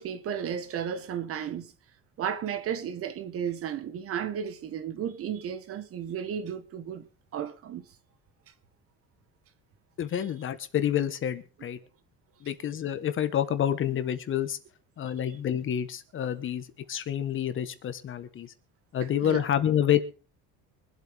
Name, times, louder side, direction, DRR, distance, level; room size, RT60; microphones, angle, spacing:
voice 1, 0.0-1.7 2.2-7.1 7.3-7.8 19.2-19.4, right 8 dB, 45° right, 1.6 m, -33 dB
voice 2, 10.0-11.8 12.4-14.6 15.0-18.5 18.9-20.0, left 10 dB, 40° left, 1.4 m, -28 dB
24.5 x 8.2 x 3.6 m
cardioid pair, 130°, 31 cm